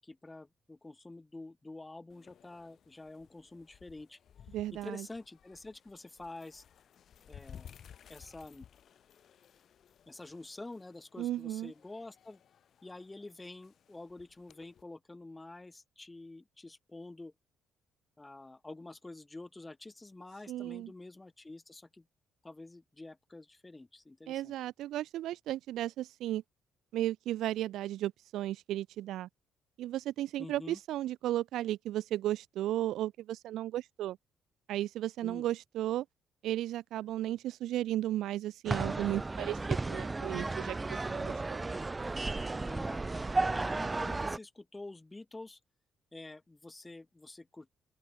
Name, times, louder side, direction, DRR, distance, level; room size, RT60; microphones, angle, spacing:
voice 1, 0.0-4.2 4.8-6.6 7.3-7.8 8.1-8.7 10.1-12.4 12.8-17.3 18.2-22.1 22.4-24.5 30.4-30.8 35.2-35.4 42.6-45.6 46.1-47.7, left 2 dB, 15° left, 7.8 m, -48 dB
sound 1, 2.1-14.8, left 9 dB, 50° left, 3.3 m, -57 dB
voice 2, 4.5-5.1 11.2-11.7 20.5-20.9 24.3-26.4 26.9-29.3 29.8-34.2 34.7-36.1 36.4-41.6, right 13 dB, 85° right, 0.7 m, -35 dB
sound 2, 38.7-44.4, right 3 dB, 15° right, 1.1 m, -34 dB
open air
cardioid pair, 140°, 0 cm